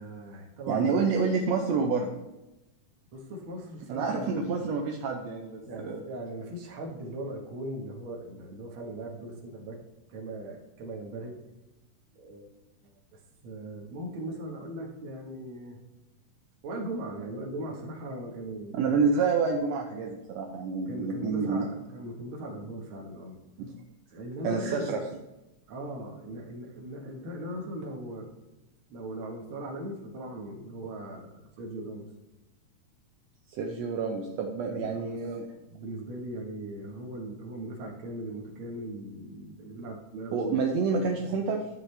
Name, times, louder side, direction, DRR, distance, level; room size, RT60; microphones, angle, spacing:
voice 1, 0.0-1.0 3.1-4.5 5.6-9.8 10.1-11.4 12.1-12.5 13.1-15.8 16.6-19.1 20.9-23.4 24.1-25.0 25.7-28.3 28.9-32.1 34.7-35.2 35.7-40.7, right 1 dB, 50° right, 0 dB, 1.8 m, -39 dB
voice 2, 0.7-2.1 3.9-6.0 18.7-21.6 23.6-23.7 24.4-25.0 33.5-35.5 40.3-41.7, right 5 dB, 75° right, 2 dB, 1.6 m, -28 dB
12.0 x 7.5 x 3.3 m, 0.98 s
omnidirectional pair, 3.7 m